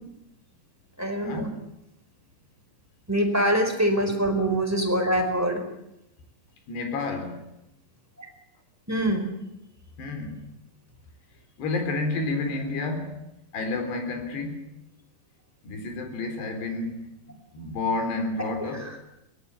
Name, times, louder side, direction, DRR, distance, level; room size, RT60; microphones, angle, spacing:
voice 1, 1.0-1.5 3.1-5.6 8.9-9.3, right 1 dB, 5° right, 3.9 m, -24 dB
voice 2, 6.7-7.4 10.0-10.4 11.6-13.2 13.5-14.7 15.6-18.9, left 3 dB, 70° left, 5.9 m, -30 dB
23.0 x 19.5 x 9.9 m
omnidirectional pair, 5.0 m